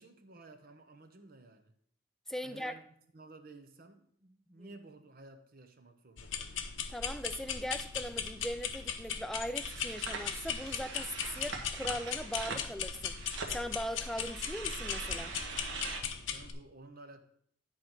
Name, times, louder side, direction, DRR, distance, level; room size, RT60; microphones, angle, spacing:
voice 1, 0.0-1.7 2.4-6.6 16.1-17.2, right 2 dB, 50° right, 0.8 m, -54 dB
voice 2, 2.3-2.7 6.9-15.3, equal, ahead, 0.4 m, -40 dB
sound 1, 6.2-16.5, left 7 dB, 75° left, 0.8 m, -38 dB
sound 2, 9.6-16.0, right 4 dB, 70° right, 1.4 m, -43 dB
10.5 x 3.9 x 6.0 m
head